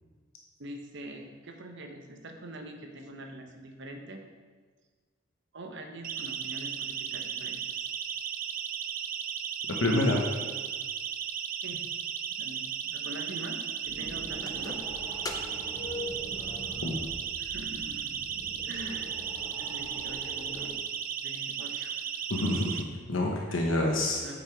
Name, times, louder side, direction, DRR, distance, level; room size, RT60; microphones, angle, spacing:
voice 1, 0.6-4.2 5.5-7.8 11.6-11.8 12.4-13.6 13.8-14.8 17.4-18.1 18.6-19.1 19.6-21.9 23.5-23.8 24.2-24.3, right 1 dB, 60° right, 3 dB, 1.0 m, -44 dB
Siren, 6.0-22.8, right 8 dB, 45° right, 0.5 m, -35 dB
voice 2, 9.8-10.3 16.8-17.0 22.3-24.2, left 1 dB, 70° left, -1 dB, 1.1 m, -27 dB
sound 1, 13.8-20.8, right 1 dB, 25° right, 1.5 m, -45 dB
sound 2, 14.3-17.5 17.8-17.9 18.7-18.8 19.2-19.3 19.5-20.1, left 2 dB, 20° left, 0.6 m, -42 dB
8.8 x 5.4 x 4.6 m, 1.4 s
head